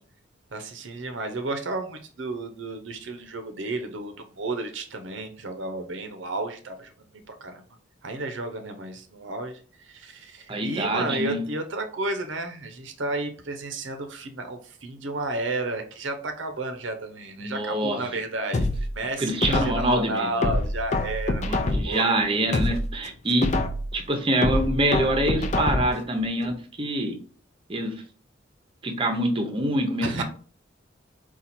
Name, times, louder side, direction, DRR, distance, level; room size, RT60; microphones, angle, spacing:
voice 1, 0.5-6.9 7.4-7.6 8.0-18.7 18.9-22.1 30.0-30.2, right 2 dB, 90° right, 6 dB, 0.7 m, -32 dB
voice 2, 10.5-11.4 17.4-18.0 19.2-20.3 21.4-23.5 23.9-27.1 27.7-27.9 28.8-30.2, right 1 dB, 30° right, 4 dB, 0.7 m, -25 dB
sound 1, 18.5-19.9 20.4-22.0 22.4-23.9 24.4-26.0 26.4-26.5, left 2 dB, 40° left, 0.5 m, -26 dB
4.1 x 2.4 x 4.3 m, 0.41 s
head